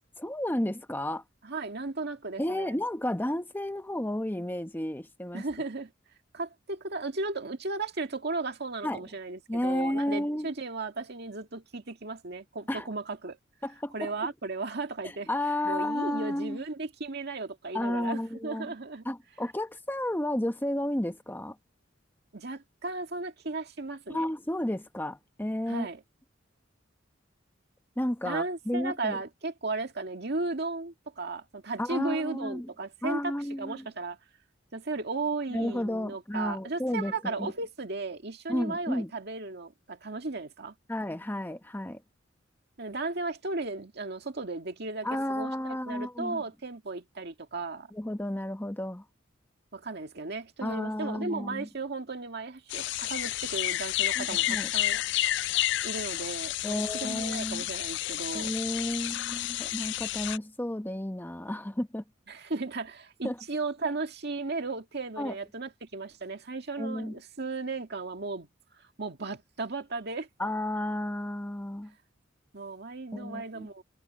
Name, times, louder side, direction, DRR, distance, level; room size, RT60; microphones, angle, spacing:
voice 1, 0.0-1.2 2.4-5.4 8.8-9.0 9.5-10.5 12.7-12.9 13.6-14.1 15.0-16.6 17.7-18.7 19.0-21.6 24.1-25.9 28.0-29.2 31.8-32.7 33.0-33.9 35.5-37.5 38.5-39.1 40.9-42.0 45.0-46.4 47.9-49.0 50.6-51.7 54.2-54.7 56.6-57.6 58.3-62.0 63.2-63.3 65.2-65.4 66.8-67.2 70.4-71.9 73.1-73.7, left 1 dB, 10° left, 0.9 m, -32 dB
voice 2, 1.4-2.8 5.3-5.9 6.3-13.4 13.9-15.3 15.6-19.1 22.3-24.3 25.7-26.0 28.2-33.3 33.6-34.2 34.7-40.7 42.8-47.9 49.7-55.0 55.8-58.5 62.3-68.5 69.0-70.3 72.5-73.8, right 3 dB, 60° right, 2.0 m, -35 dB
sound 1, 52.7-60.4, left 15 dB, 65° left, 0.4 m, -30 dB
head